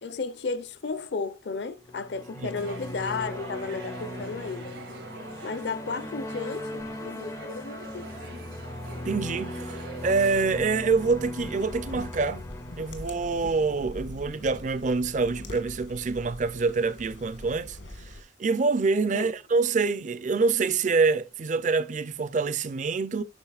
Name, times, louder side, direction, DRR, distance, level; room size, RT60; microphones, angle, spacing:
voice 1, 0.0-4.8 5.4-8.1 19.1-19.3, left 4 dB, 60° left, 0.6 m, -33 dB
sound 1, 1.8-14.3, left 1 dB, 15° left, 0.4 m, -39 dB
sound 2, 2.6-10.4, right 2 dB, 75° right, 1.9 m, -43 dB
voice 2, 9.0-12.4 12.8-17.8 18.1-18.2 18.4-23.2, right 4 dB, 40° right, 0.5 m, -26 dB
sound 3, 10.3-18.2, left 1 dB, 80° left, 1.6 m, -43 dB
8.8 x 6.0 x 2.4 m
head